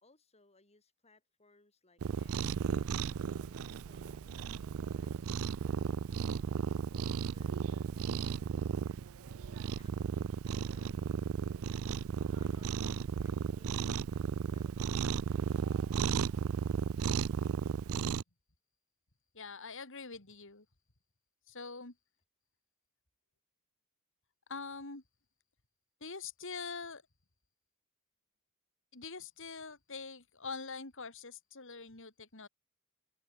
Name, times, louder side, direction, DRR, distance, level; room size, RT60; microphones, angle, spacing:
voice 1, 0.0-5.3 6.7-8.8 9.2-11.0 11.7-15.8, left 2 dB, 30° left, 4.1 m, -67 dB
Cat, 2.0-18.2, right 6 dB, 65° right, 0.4 m, -35 dB
voice 2, 19.3-20.6 21.5-21.9 24.5-25.0 26.0-27.0 28.9-32.5, left 4 dB, 60° left, 3.3 m, -44 dB
open air
head